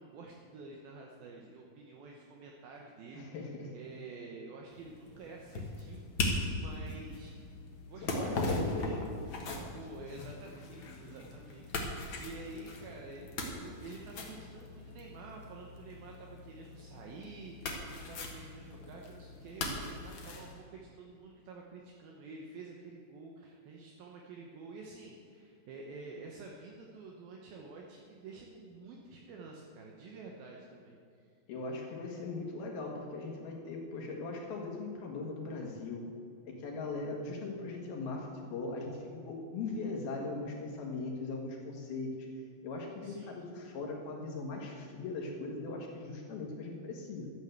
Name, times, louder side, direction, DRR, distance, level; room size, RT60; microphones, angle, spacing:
voice 1, 0.0-7.5 7.9-8.4 9.7-31.3 43.0-43.4, right 3 dB, 70° right, 0 dB, 2.7 m, -49 dB
voice 2, 3.1-3.7 8.0-9.0 31.5-36.0 36.4-42.3 42.6-47.3, left 3 dB, 70° left, 0 dB, 3.3 m, -39 dB
sound 1, 4.7-20.5, left 2 dB, 55° left, 1.4 m, -39 dB
12.5 x 9.1 x 8.0 m, 2.3 s
omnidirectional pair, 4.6 m